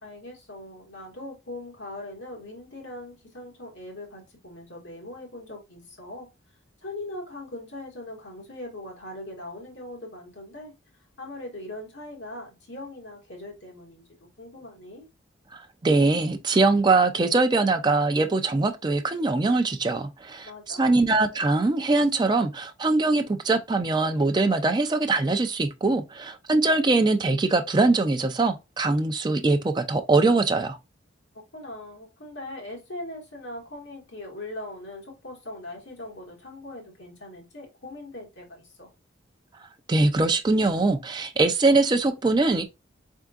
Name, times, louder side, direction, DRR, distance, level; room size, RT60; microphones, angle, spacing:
voice 1, 0.0-6.3 6.8-10.7 11.2-15.1 20.4-20.9 31.5-38.9, left 1 dB, 65° left, 1.7 m, -40 dB
voice 2, 15.8-30.8 39.9-42.6, right 3 dB, 20° right, 0.4 m, -22 dB
3.6 x 3.6 x 2.4 m
head